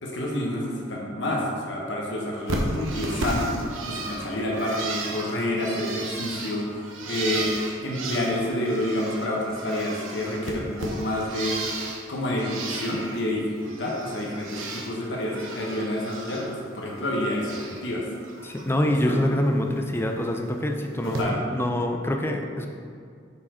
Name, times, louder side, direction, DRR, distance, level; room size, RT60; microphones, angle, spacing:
voice 1, 0.0-3.5 3.9-6.8 7.1-7.5 7.8-11.6 12.1-18.0 18.8-19.2 21.0-21.4, left 1 dB, 65° left, -2 dB, 1.1 m, -28 dB
Bird, 2.5-9.3 9.5-12.0 12.4-13.2 13.6-14.9 15.2-16.5 16.8-17.8 18.2-18.6 19.9-20.0 21.0-21.2, right 2 dB, 90° right, 0.9 m, -34 dB
voice 2, 18.4-22.7, left 1 dB, 10° left, 3 dB, 0.4 m, -25 dB
6.9 x 4.7 x 4.3 m, 2.3 s
head